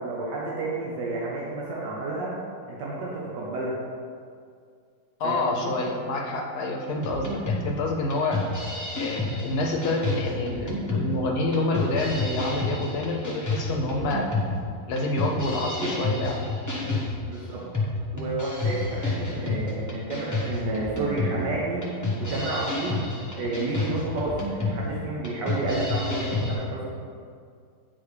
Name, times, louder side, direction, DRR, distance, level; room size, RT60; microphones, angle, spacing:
voice 1, 0.0-2.3 2.7-3.7 5.2-5.7 15.8-16.1 17.2-17.6 18.1-21.8 22.2-23.0 23.3-27.1, right 2 dB, 75° right, -5 dB, 1.4 m, -30 dB
voice 2, 5.2-8.4 9.0-14.3 14.9-16.5 16.8-17.0, left 2 dB, 65° left, 1 dB, 1.1 m, -28 dB
sound 1, 7.0-26.5, left 2 dB, 25° left, 0.4 m, -30 dB
8.7 x 4.0 x 3.3 m, 2.2 s
omnidirectional pair, 2.0 m